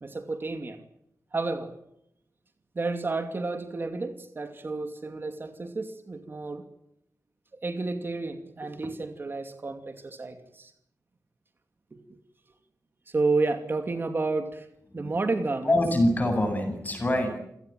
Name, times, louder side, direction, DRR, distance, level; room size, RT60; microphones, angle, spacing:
voice 1, 0.0-0.8 1.3-1.7 2.7-6.7 7.6-10.7 11.9-12.0 13.1-14.7 14.9-15.8, right 3 dB, 35° right, 7 dB, 2.4 m, -31 dB
voice 2, 15.6-17.4, left 1 dB, 30° left, 6 dB, 7.8 m, -25 dB
28.5 x 18.0 x 9.2 m, 0.78 s
wide cardioid pair, 165°, 6 cm